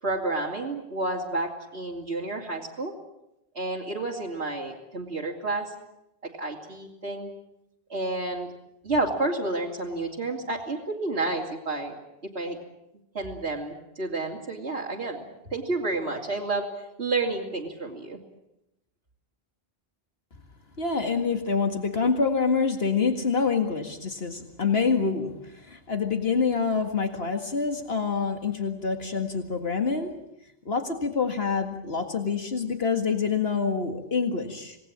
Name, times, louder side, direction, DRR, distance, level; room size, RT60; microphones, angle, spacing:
voice 1, 0.0-2.9 3.5-5.7 6.2-7.3 7.9-8.5 8.8-12.0 12.3-12.6 13.1-16.6 17.0-18.2, right 2 dB, 90° right, -3 dB, 3.3 m, -30 dB
voice 2, 20.8-30.1 30.7-34.8, left 5 dB, 75° left, 5 dB, 2.2 m, -26 dB
27.0 x 19.0 x 8.8 m, 0.86 s
omnidirectional pair, 1.1 m